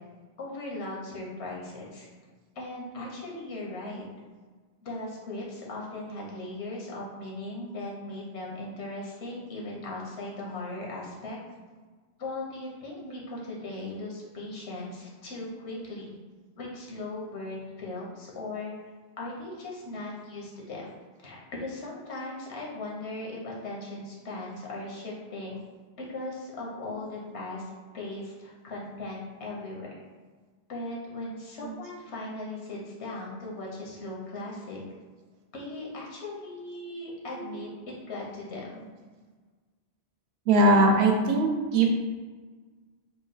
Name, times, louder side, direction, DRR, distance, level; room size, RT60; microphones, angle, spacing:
voice 1, 0.4-2.1 2.5-4.0 4.8-11.4 12.2-16.2 16.6-18.7 19.2-20.9 21.2-25.6 26.0-29.9 30.7-34.8 35.5-38.9, left 2 dB, 90° left, -3 dB, 1.0 m, -38 dB
voice 2, 37.1-37.7 40.5-42.0, right 2 dB, 75° right, 1 dB, 0.8 m, -23 dB
3.0 x 2.0 x 3.9 m, 1.4 s
omnidirectional pair, 1.1 m